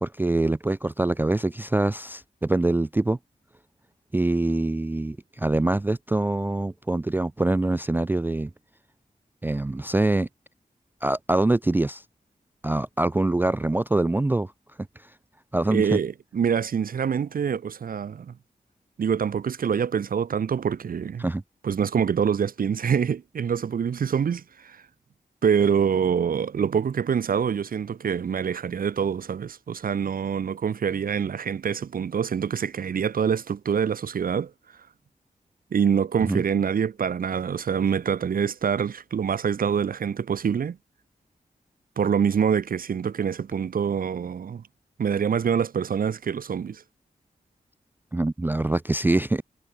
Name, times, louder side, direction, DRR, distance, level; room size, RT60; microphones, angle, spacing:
voice 1, 0.0-3.2 4.1-8.5 9.4-10.3 11.0-12.0 12.6-14.5 15.5-16.0 21.2-21.4 36.2-36.4 48.1-49.4, right 2 dB, 15° right, 0.3 m, -24 dB
voice 2, 15.7-18.3 19.0-21.2 21.6-24.8 25.4-34.5 35.7-40.8 42.0-44.6 45.0-46.8, right 7 dB, 75° right, 0.7 m, -25 dB
wide cardioid pair, 115°, 15 cm